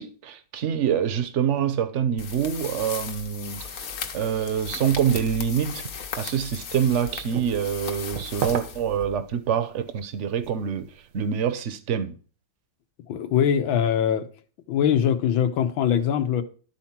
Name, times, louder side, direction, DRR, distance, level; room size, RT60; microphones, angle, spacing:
voice 1, 0.0-3.9 4.1-12.1, right 8 dB, 55° right, 0.9 m, -26 dB
sound 1, 2.2-9.3, left 6 dB, 55° left, 1.4 m, -37 dB
sound 2, 4.9-11.4, right 8 dB, 75° right, 1.6 m, -38 dB
voice 2, 13.1-14.3 14.7-16.4, left 9 dB, 85° left, 1.7 m, -22 dB
12.5 x 4.3 x 5.9 m
omnidirectional pair, 2.1 m